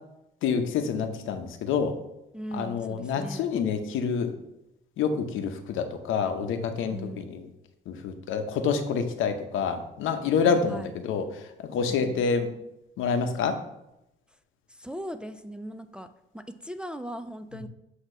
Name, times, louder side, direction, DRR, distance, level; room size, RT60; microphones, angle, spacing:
voice 1, 0.4-1.9 2.5-4.3 5.0-7.5 7.9-12.5 13.0-13.6 17.5-17.6, left 6 dB, 85° left, 7 dB, 0.8 m, -27 dB
voice 2, 2.3-3.5 6.9-7.3 10.4-10.9 12.0-12.2 14.8-17.7, equal, 5° right, 8 dB, 0.4 m, -39 dB
8.0 x 2.9 x 5.5 m, 0.87 s
cardioid pair, 90°, 20 cm